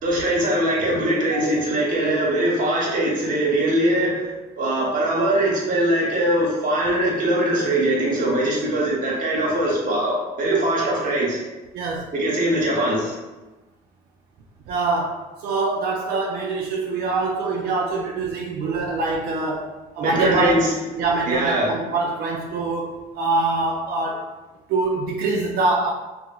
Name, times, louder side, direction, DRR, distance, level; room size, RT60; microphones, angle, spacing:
voice 1, 0.0-4.2 4.6-11.4 12.1-13.2 20.0-20.7 21.3-21.7, right 1 dB, 55° right, -3 dB, 0.9 m, -21 dB
voice 2, 11.7-12.1 14.7-20.6 20.9-24.2 24.7-25.9, right 3 dB, 70° right, -1 dB, 0.4 m, -24 dB
2.9 x 2.1 x 2.3 m, 1.1 s
cardioid pair, 110°, 17 cm